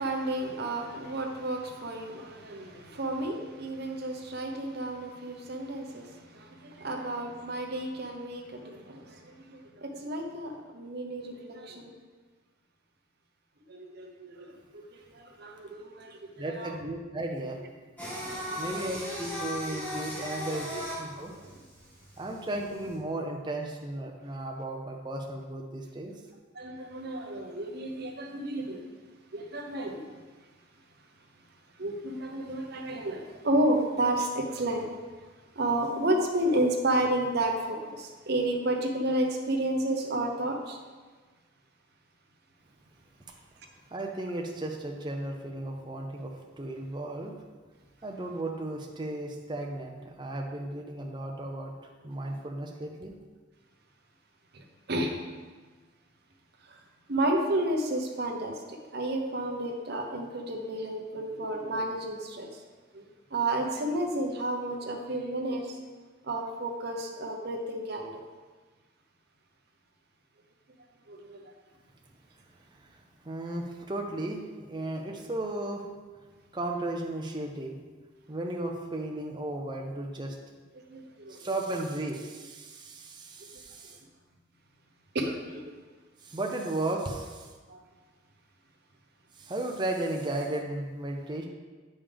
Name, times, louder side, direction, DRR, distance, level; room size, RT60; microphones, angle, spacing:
voice 1, 0.0-12.0 13.7-16.8 18.3-18.9 21.2-21.4 26.5-28.8 29.3-30.0 31.8-34.9 35.5-40.8 54.5-55.1 56.7-56.8 57.1-62.6 62.9-63.0 63.3-65.8 66.2-68.2 71.1-71.5 80.9-81.4 85.1-85.7 87.7-87.8, right 1 dB, 55° right, 2 dB, 0.9 m, -31 dB
voice 2, 16.4-17.6 18.6-20.7 21.0-21.3 22.2-26.1 43.9-47.3 48.0-51.7 52.0-53.1 72.8-75.9 76.5-77.8 78.3-80.4 81.3-84.0 86.2-87.5 89.4-91.4, right 1 dB, 25° right, 1 dB, 0.6 m, -35 dB
Singing, 18.0-22.9, equal, 10° left, 1.4 m, -37 dB
8.5 x 5.4 x 3.5 m, 1.4 s
head